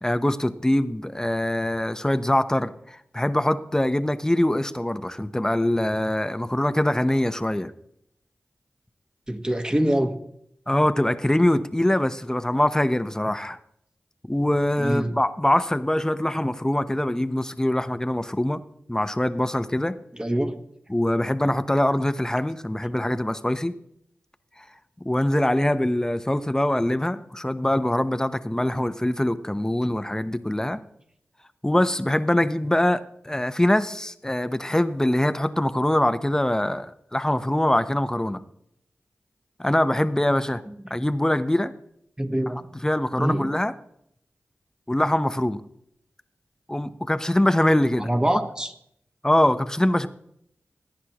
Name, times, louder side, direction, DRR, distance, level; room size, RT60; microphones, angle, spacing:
voice 1, 0.0-7.7 10.7-13.6 14.3-18.6 18.9-20.0 20.9-23.7 25.0-30.8 31.6-38.4 39.6-40.6 40.9-41.7 42.8-43.7 44.9-45.6 46.7-48.1 49.2-50.1, left 1 dB, 15° left, 11 dB, 0.8 m, -23 dB
voice 2, 9.3-10.2 14.8-15.2 20.1-20.6 40.7-40.8 42.2-42.6 43.2-43.5 48.0-48.7, right 1 dB, 15° right, 7 dB, 1.3 m, -24 dB
17.5 x 10.0 x 3.0 m, 0.73 s
cardioid pair, 40°, 4 cm